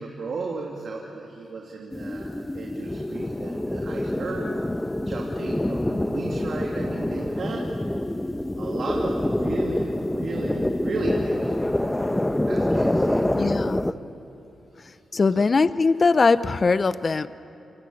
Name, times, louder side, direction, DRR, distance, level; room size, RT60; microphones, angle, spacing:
voice 1, 0.0-4.5 5.0-7.7 8.6-12.0 12.5-13.3 15.3-15.5, right 3 dB, 65° right, -1 dB, 3.0 m, -35 dB
sound 1, 1.9-13.9, left 1 dB, 15° left, 1.1 m, -26 dB
voice 2, 13.3-13.8 15.1-17.3, left 4 dB, 45° left, 14 dB, 0.7 m, -21 dB
28.5 x 24.0 x 8.7 m, 2.9 s
supercardioid pair, 50°, 0 cm